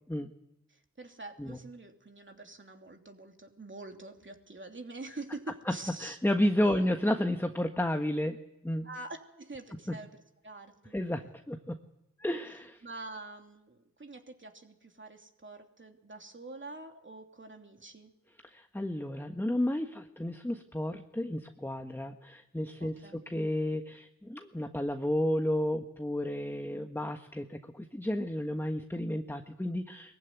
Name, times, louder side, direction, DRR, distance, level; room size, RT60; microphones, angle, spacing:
voice 1, 0.7-6.2 6.6-6.8 8.8-10.9 12.8-18.1 22.8-23.2, right 2 dB, 35° right, 4 dB, 3.1 m, -46 dB
voice 2, 6.0-8.4 8.6-8.9 9.9-10.0 10.9-11.8 12.2-12.8 18.4-30.2, left 1 dB, 5° left, 6 dB, 1.5 m, -32 dB
20.0 x 15.0 x 9.5 m, 0.88 s
supercardioid pair, 40°, 33 cm